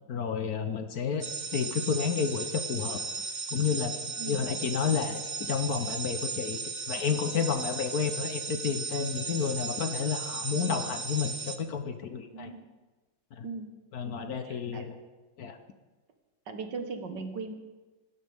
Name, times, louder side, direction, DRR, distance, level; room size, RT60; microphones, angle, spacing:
voice 1, 0.1-3.0 3.5-4.0 4.3-6.6 6.9-12.5 13.3-13.5 13.9-14.9 15.4-15.6, left 6 dB, 60° left, 8 dB, 1.3 m, -31 dB
sound 1, 1.2-11.6, right 4 dB, 30° right, 0.8 m, -36 dB
voice 2, 12.3-12.6 13.4-13.7 14.0-14.9 16.5-17.5, right 4 dB, 65° right, 6 dB, 2.0 m, -39 dB
26.0 x 12.5 x 3.5 m, 1.2 s
omnidirectional pair, 2.1 m